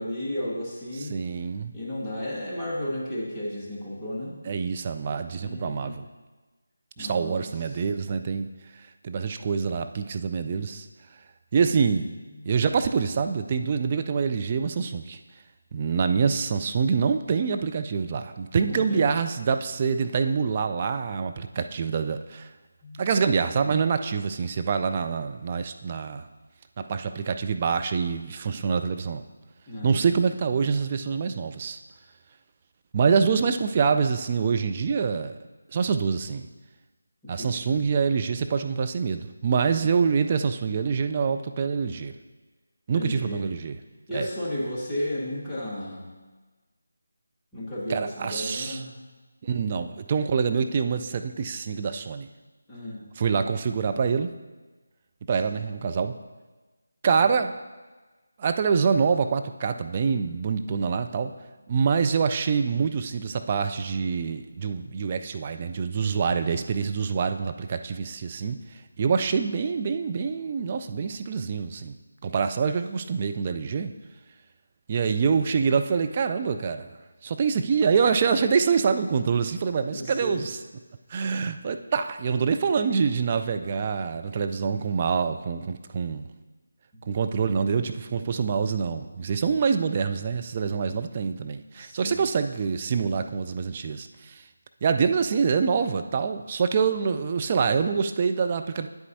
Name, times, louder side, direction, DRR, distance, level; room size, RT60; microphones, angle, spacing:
voice 1, 0.0-1.1 1.7-4.4 5.4-5.9 7.0-7.5 18.6-19.0 22.8-23.0 29.7-30.2 37.2-37.7 39.7-39.8 42.9-43.4 44.1-46.0 47.5-48.9 52.7-53.0 55.5-55.6 79.9-80.4 86.9-87.0 91.8-92.2, left 1 dB, 5° left, -9 dB, 1.5 m, -33 dB
voice 2, 0.9-1.7 4.4-6.1 7.0-8.5 9.0-10.9 11.5-12.1 12.4-15.2 15.7-22.5 23.0-26.3 26.8-29.2 29.8-31.8 32.9-35.4 35.7-36.5 37.3-42.1 42.9-43.8 44.1-44.3 47.9-48.8 49.4-52.3 53.2-54.3 55.3-56.2 57.0-57.6 58.4-61.3 61.7-68.6 69.0-72.0 72.2-73.9 74.9-76.9 77.2-80.6 81.1-86.3 87.1-94.4 94.8-98.9, right 5 dB, 30° right, 8 dB, 0.4 m, -25 dB
9.4 x 8.2 x 2.7 m, 1.3 s
figure-of-eight pair, 160°, 0 cm